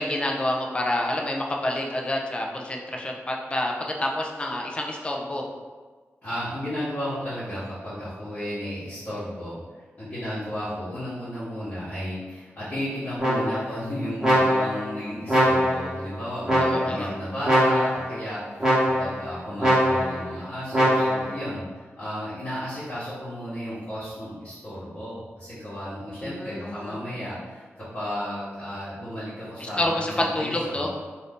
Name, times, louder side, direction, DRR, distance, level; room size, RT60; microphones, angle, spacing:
voice 1, 0.0-5.4 16.6-17.1 26.2-27.0 29.6-30.9, left 1 dB, 25° left, 0 dB, 0.4 m, -28 dB
voice 2, 6.2-9.6 10.0-30.9, equal, 40° left, -14 dB, 1.1 m, -33 dB
sound 1, 13.2-13.7 14.2-14.9 15.3-15.9 16.5-17.0 17.4-18.1 18.6-19.2 19.6-20.2 20.7-21.3, equal, 15° right, 1.0 m, -22 dB
2.7 x 2.5 x 3.5 m, 1.4 s
wide cardioid pair, 125°, 5 cm